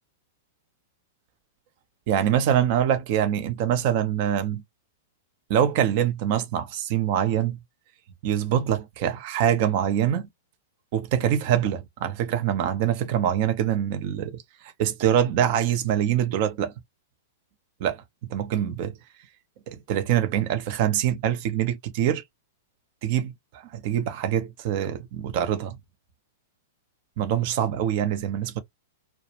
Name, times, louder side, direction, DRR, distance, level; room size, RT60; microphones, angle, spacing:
voice 1, 2.1-4.6 5.5-7.6 8.2-10.3 10.9-14.4 14.8-16.7 17.8-18.0 18.3-18.9 19.7-22.2 23.0-23.3 23.7-25.8 27.2-28.6, right 10 dB, 50° right, 0.7 m, -24 dB
2.4 x 2.2 x 2.9 m
hypercardioid pair, 105°, 0 cm